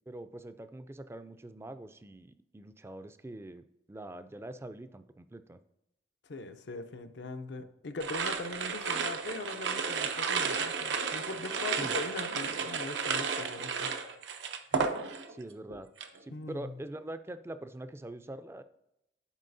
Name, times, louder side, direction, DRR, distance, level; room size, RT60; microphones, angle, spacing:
voice 1, 0.1-5.6 11.7-11.9 15.3-15.9 16.2-18.6, right 1 dB, 15° right, 11 dB, 0.3 m, -44 dB
voice 2, 6.3-13.9 16.3-16.8, left 3 dB, 75° left, 9 dB, 0.6 m, -41 dB
sound 1, 8.0-15.4 15.7-16.2, right 5 dB, 85° right, 0.6 m, -33 dB
11.0 x 4.7 x 2.6 m, 0.84 s
head